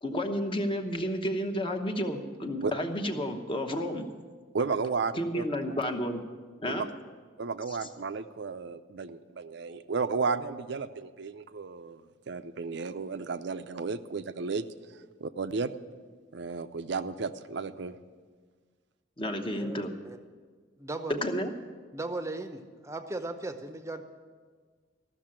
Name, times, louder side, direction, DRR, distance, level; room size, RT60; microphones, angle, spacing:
voice 1, 0.0-4.0 5.2-6.2 6.6-6.9 19.2-19.9 21.1-21.5, equal, 25° left, 5 dB, 0.9 m, -31 dB
voice 2, 4.5-5.4 6.7-6.9 7.4-12.0 12.3-14.6 14.9-15.7 16.3-18.0, right 4 dB, 60° right, 12 dB, 0.5 m, -33 dB
voice 3, 19.5-20.2 20.8-21.2 21.9-24.0, right 2 dB, 15° right, 8 dB, 0.7 m, -37 dB
14.0 x 6.6 x 8.7 m, 1.5 s
head